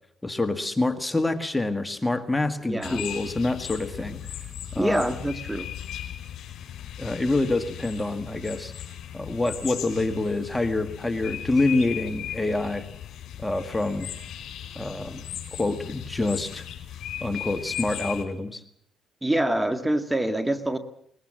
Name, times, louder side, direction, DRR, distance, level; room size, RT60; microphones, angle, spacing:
voice 1, 0.2-4.2 4.7-5.0 7.0-8.7 9.1-12.9 13.4-14.1 14.8-15.2 15.6-16.6 17.2-18.6, left 2 dB, 10° left, 8 dB, 1.8 m, -26 dB
voice 2, 2.6-3.0 4.8-5.7 19.2-20.8, right 1 dB, 10° right, 9 dB, 1.8 m, -26 dB
sound 1, 2.8-18.2, left 10 dB, 70° left, 5.0 m, -37 dB
22.0 x 21.0 x 7.6 m, 0.69 s
cardioid pair, 90°, 0 cm